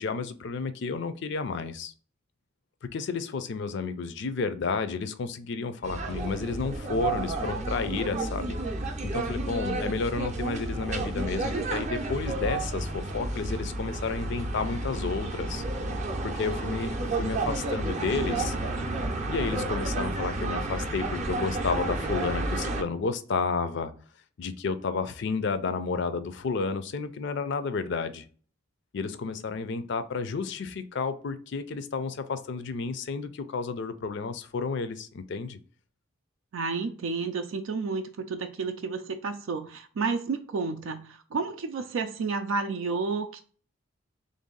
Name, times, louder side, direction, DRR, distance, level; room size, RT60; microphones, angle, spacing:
voice 1, 0.0-1.9 2.8-8.6 9.1-15.6 16.2-18.5 19.3-23.9 24.4-28.2 28.9-35.6, left 4 dB, 60° left, 11 dB, 0.4 m, -31 dB
sound 1, 5.8-22.8, right 2 dB, 35° right, 0.5 m, -31 dB
voice 2, 36.5-43.4, right 4 dB, 85° right, 6 dB, 0.4 m, -31 dB
3.4 x 2.6 x 3.8 m, 0.43 s
head